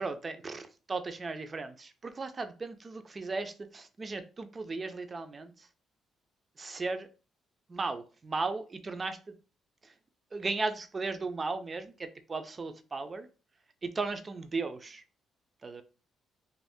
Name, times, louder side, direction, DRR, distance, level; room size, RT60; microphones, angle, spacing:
voice 1, 0.0-5.7 6.6-7.1 7.7-9.3 9.8-9.9 10.3-13.3 13.8-15.0 15.6-15.8, right 3 dB, 30° right, 9 dB, 0.4 m, -36 dB
2.6 x 2.5 x 3.4 m, 0.34 s
cardioid pair, 90°, 0 cm